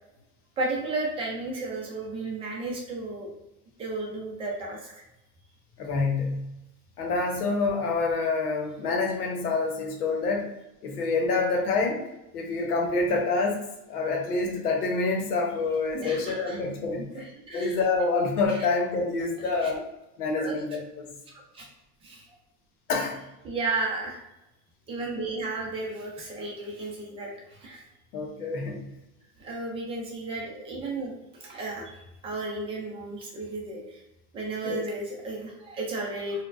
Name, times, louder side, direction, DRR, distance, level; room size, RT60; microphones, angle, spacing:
voice 1, 0.6-3.3 3.8-5.0 15.9-16.6 17.1-17.8 18.5-18.6 19.6-19.7 20.4-20.6 21.3-21.6 22.0-22.2 23.4-24.2 24.9-27.8 29.4-34.0 34.3-36.4, right 2 dB, 15° right, -2 dB, 0.4 m, -33 dB
voice 2, 5.8-6.5 7.0-10.5 10.8-17.3 17.5-19.8 20.2-21.1 22.9-23.2 28.1-28.9 34.6-34.8, left 3 dB, 90° left, 1 dB, 1.0 m, -27 dB
4.4 x 2.2 x 2.5 m, 0.91 s
supercardioid pair, 150°, 44 cm